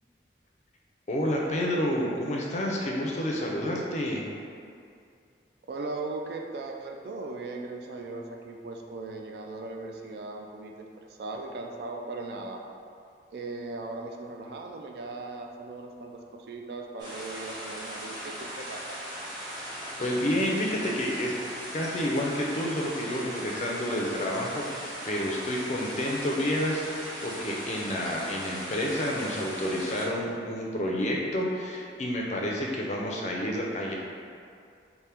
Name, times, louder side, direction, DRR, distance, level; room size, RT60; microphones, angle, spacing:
voice 1, 1.1-4.2 20.0-21.3 21.7-33.9, equal, 40° left, -1 dB, 0.4 m, -29 dB
voice 2, 5.7-12.6 13.3-19.0, right 3 dB, 60° right, 2 dB, 0.3 m, -38 dB
sound 1, 17.0-30.1, equal, 25° right, 0.8 m, -39 dB
3.4 x 2.1 x 4.2 m, 2.4 s
head